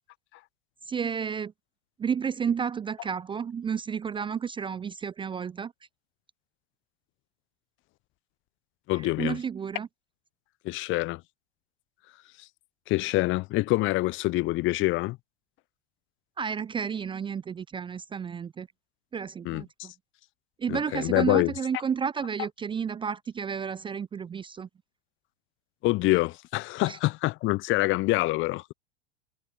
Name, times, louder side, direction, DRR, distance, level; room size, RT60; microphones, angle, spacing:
voice 1, 0.9-1.5 2.0-5.7 8.9-9.9 16.4-18.7 19.1-19.9 20.6-24.7 26.9-27.0, right 7 dB, 15° right, 0.7 m, -31 dB
voice 2, 8.9-9.4 10.6-11.2 12.9-15.2 19.4-19.9 20.7-21.5 25.8-28.7, left 20 dB, 35° left, 1.0 m, -26 dB
figure-of-eight pair, 85°, 34 cm